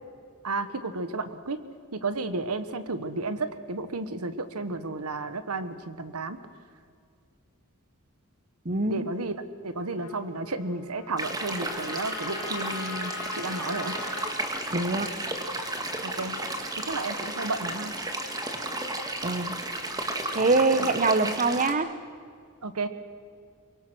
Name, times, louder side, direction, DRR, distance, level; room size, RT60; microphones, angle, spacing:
voice 1, 0.4-1.6 1.9-6.4 8.9-14.0 16.0-16.4 16.8-17.9 20.8-20.9 22.6-22.9, right 3 dB, 80° right, 11 dB, 1.4 m, -32 dB
voice 2, 8.6-9.1 14.7-15.1 19.2-19.6 20.3-21.9, right 3 dB, 35° right, 12 dB, 1.1 m, -24 dB
Trumpet, 10.0-14.3, left 4 dB, 85° left, 3.0 m, -41 dB
sound 1, 11.2-21.7, right 1 dB, 15° right, 1.8 m, -33 dB
23.5 x 23.0 x 6.3 m, 2.2 s
head